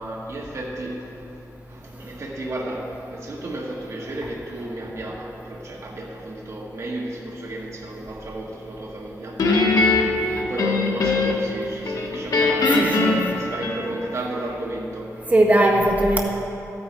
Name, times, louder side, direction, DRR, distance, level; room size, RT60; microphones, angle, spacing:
voice 1, 0.0-1.4 1.7-15.2, right 1 dB, 55° right, -2 dB, 1.4 m, -33 dB
Guitar, 9.4-11.5 11.8-14.2, left 3 dB, 75° left, 1.3 m, -21 dB
voice 2, 12.7-13.2 15.3-16.2, right 1 dB, 25° right, -1 dB, 1.6 m, -18 dB
14.0 x 9.3 x 4.6 m, 2.8 s
wide cardioid pair, 135°, 6 cm